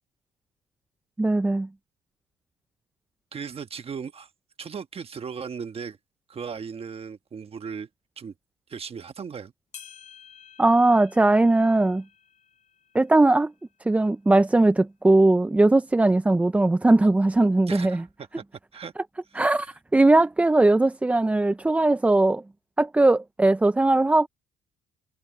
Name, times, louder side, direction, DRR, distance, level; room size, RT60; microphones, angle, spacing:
voice 1, 1.2-1.7 10.6-12.0 12.9-13.5 13.9-18.0 19.4-22.4 22.8-24.3, right 2 dB, 10° right, 0.3 m, -19 dB
voice 2, 3.3-4.3 4.6-6.0 6.3-7.9 8.2-8.3 8.7-9.5 17.7-18.4 18.7-18.9 19.3-19.7, right 6 dB, 35° right, 1.3 m, -37 dB
sound 1, 9.7-14.4 14.9-15.0 15.8-15.9 16.8-16.9, left 7 dB, 45° left, 6.5 m, -51 dB
cardioid pair, 110°, 17 cm